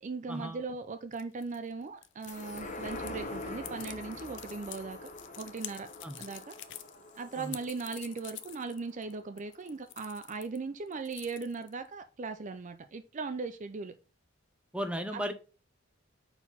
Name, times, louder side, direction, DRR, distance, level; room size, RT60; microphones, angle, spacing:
voice 1, 0.0-5.1 5.4-5.9 6.2-6.6 7.2-13.9 15.1-15.3, right 4 dB, 40° right, 0.4 m, -38 dB
sound 1, 1.1-10.6 10.9-11.9, left 13 dB, 65° left, 0.6 m, -47 dB
sound 2, 2.3-9.1 9.5-9.6, left 2 dB, 40° left, 1.0 m, -44 dB
voice 2, 14.7-15.3, equal, 5° right, 0.8 m, -35 dB
4.6 x 4.3 x 5.5 m
head